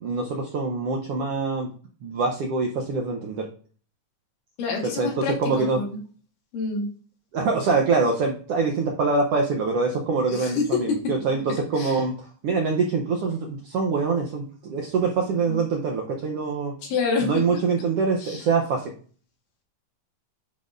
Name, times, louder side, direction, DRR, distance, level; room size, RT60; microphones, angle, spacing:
voice 1, 0.0-1.7 2.0-3.5 4.8-5.8 7.3-16.7 17.2-18.9, right 4 dB, 80° right, 1 dB, 1.3 m, -24 dB
voice 2, 4.6-6.0 6.5-6.9 10.3-11.0 11.3-11.4 11.8-12.0 15.5-15.6 16.8-17.3 18.2-18.4, left 4 dB, 85° left, 0 dB, 3.3 m, -27 dB
10.5 x 4.1 x 2.5 m, 0.43 s
omnidirectional pair, 3.7 m